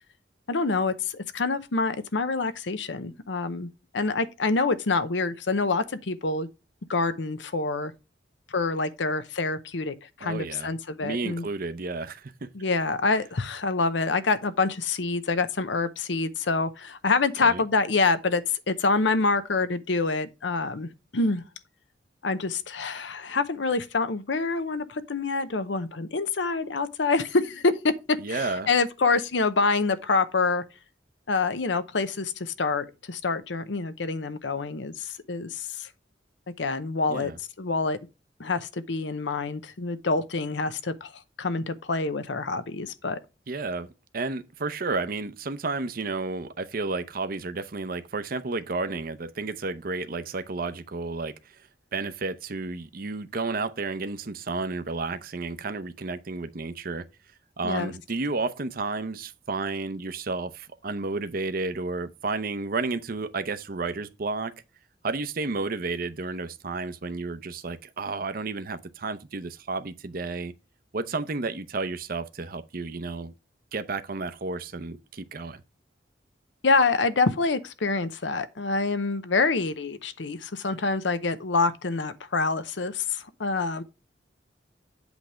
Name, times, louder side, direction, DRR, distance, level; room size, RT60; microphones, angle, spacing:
voice 1, 0.5-6.5 6.9-7.9 8.5-11.4 12.5-21.4 22.2-30.6 31.3-35.9 36.6-37.3 37.6-38.0 38.4-41.1 41.4-43.2 57.6-57.9 76.6-83.8, left 3 dB, 80° left, 0.8 m, -26 dB
voice 2, 10.2-10.7 11.0-12.5 17.4-17.6 28.2-28.7 37.1-37.4 43.5-43.9 44.1-51.3 51.9-57.1 57.6-64.5 65.0-70.5 70.9-73.3 73.7-75.6, right 3 dB, 55° right, 0.7 m, -32 dB
8.2 x 3.4 x 6.3 m
head